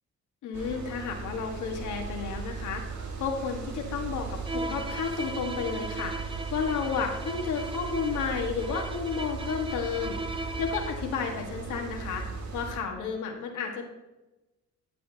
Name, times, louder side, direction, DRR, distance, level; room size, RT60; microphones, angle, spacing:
voice 1, 0.4-2.8 3.2-10.2 10.6-12.2 12.5-13.9, left 6 dB, 80° left, 2 dB, 1.5 m, -32 dB
sound 1, 0.5-12.8, right 4 dB, 65° right, 2.0 m, -37 dB
Bowed string instrument, 4.4-11.1, right 2 dB, 15° right, 0.6 m, -38 dB
15.0 x 6.3 x 2.8 m, 1.0 s
cardioid pair, 90°, 30 cm